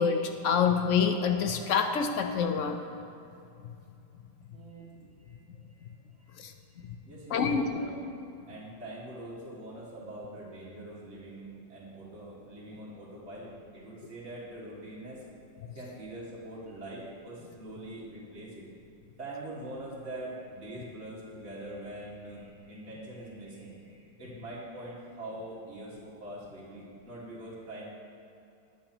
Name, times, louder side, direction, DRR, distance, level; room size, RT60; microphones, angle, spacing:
voice 1, 0.0-2.8 6.4-6.5 7.3-7.6, left 6 dB, 75° left, 6 dB, 0.7 m, -26 dB
voice 2, 4.5-5.4 5.7-5.9 6.2-6.4 6.7-8.0 8.5-15.2 15.8-18.7 19.2-27.9, right 1 dB, 35° right, -8 dB, 2.0 m, -44 dB
20.0 x 7.0 x 2.9 m, 2.7 s
omnidirectional pair, 2.0 m